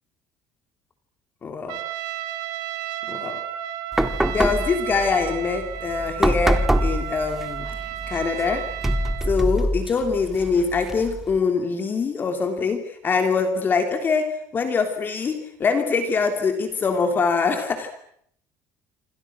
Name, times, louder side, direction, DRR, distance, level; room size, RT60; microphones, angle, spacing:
voice 1, 1.4-1.8 3.1-3.4 4.3-7.7 8.1-8.7 9.2-17.9, left 5 dB, 30° left, 6 dB, 3.2 m, -24 dB
Trumpet, 1.7-9.4, right 12 dB, 75° right, 3.3 m, -33 dB
sound 1, 3.9-11.4, right 1 dB, 5° right, 1.9 m, -26 dB
27.5 x 26.5 x 6.2 m, 0.66 s
cardioid pair, 145°, 7 cm